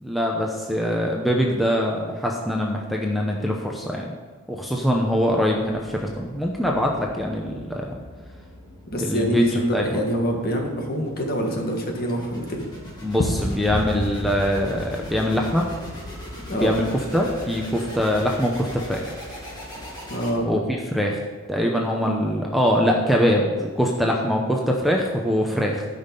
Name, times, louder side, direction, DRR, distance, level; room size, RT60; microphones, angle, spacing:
voice 1, 0.0-4.1 4.5-7.9 9.0-10.0 13.0-15.7 16.5-16.8 17.1-19.1 20.4-21.2 21.5-25.8, equal, ahead, -1 dB, 0.8 m, -23 dB
sound 1, 4.6-20.7, equal, 20° left, 2.3 m, -42 dB
voice 2, 8.9-12.6 16.5-16.8 20.1-20.5, right 1 dB, 45° left, 2 dB, 1.6 m, -25 dB
sound 2, 12.6-20.6, left 1 dB, 60° left, 1.3 m, -34 dB
13.0 x 5.5 x 5.4 m, 1.5 s
head